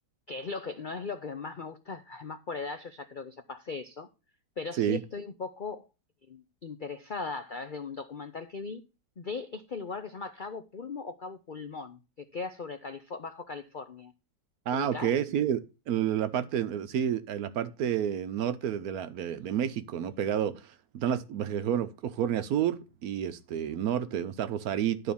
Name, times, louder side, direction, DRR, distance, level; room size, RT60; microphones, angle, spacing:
voice 1, 0.3-4.1 4.6-5.9 6.3-8.8 9.2-14.1 14.7-15.1, left 4 dB, 90° left, 0.4 m, -38 dB
voice 2, 14.7-25.1, right 9 dB, 65° right, 1.0 m, -30 dB
11.5 x 3.9 x 6.9 m
omnidirectional pair, 1.9 m